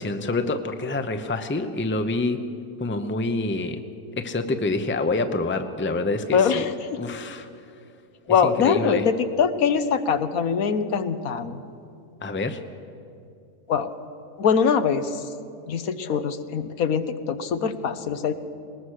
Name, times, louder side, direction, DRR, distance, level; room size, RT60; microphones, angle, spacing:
voice 1, 0.0-2.4 2.8-3.8 4.2-6.7 7.0-7.5 8.4-9.0 12.2-12.6, left 2 dB, 10° left, 7 dB, 0.7 m, -27 dB
voice 2, 6.3-7.0 8.3-11.6 13.7-13.9 14.4-15.3 15.7-18.3, left 6 dB, 75° left, 10 dB, 1.4 m, -23 dB
20.5 x 19.5 x 6.5 m, 2.5 s
omnidirectional pair, 1.5 m